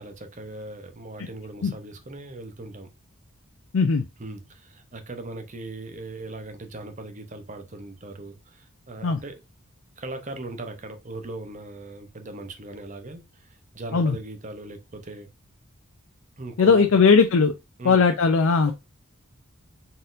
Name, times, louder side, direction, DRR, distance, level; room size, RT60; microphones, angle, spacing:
voice 1, 0.0-2.9 4.2-9.4 10.0-15.3 16.4-16.9 17.8-18.0, right 2 dB, 35° right, 0.7 m, -39 dB
voice 2, 3.7-4.1 9.0-9.2 13.9-14.2 16.6-17.5 17.8-18.7, left 5 dB, 75° left, 0.5 m, -18 dB
4.2 x 3.8 x 2.5 m
head